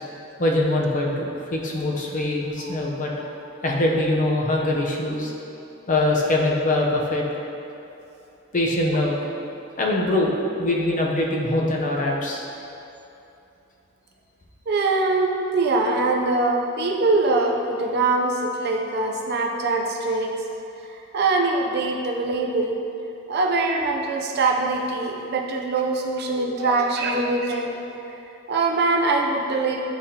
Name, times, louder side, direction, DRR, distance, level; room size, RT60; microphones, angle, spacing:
voice 1, 0.4-3.3 3.6-5.3 5.9-7.3 8.5-9.3 9.8-10.3 10.6-12.4 26.3-26.8, left 1 dB, 40° left, -1 dB, 0.7 m, -23 dB
voice 2, 14.7-20.3 21.1-22.8 23.3-27.7 28.5-29.8, right 3 dB, 55° right, 1 dB, 0.5 m, -23 dB
9.5 x 3.5 x 2.8 m, 2.8 s
head